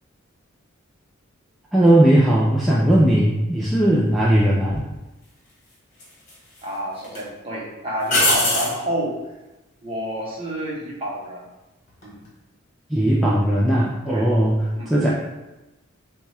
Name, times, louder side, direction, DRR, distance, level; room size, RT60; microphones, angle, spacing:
voice 1, 1.7-4.8 12.9-15.1, right 1 dB, ahead, -6 dB, 0.4 m, -18 dB
sound 1, 4.7-4.9 6.0-6.6 7.0-7.2 8.1-8.8 11.9-12.3, left 1 dB, 35° left, 1.4 m, -21 dB
voice 2, 6.6-9.2 9.8-11.4 12.0-12.2 14.1-14.3 14.7-15.1, equal, 25° right, -4 dB, 1.1 m, -29 dB
6.8 x 2.3 x 3.4 m, 1.0 s
head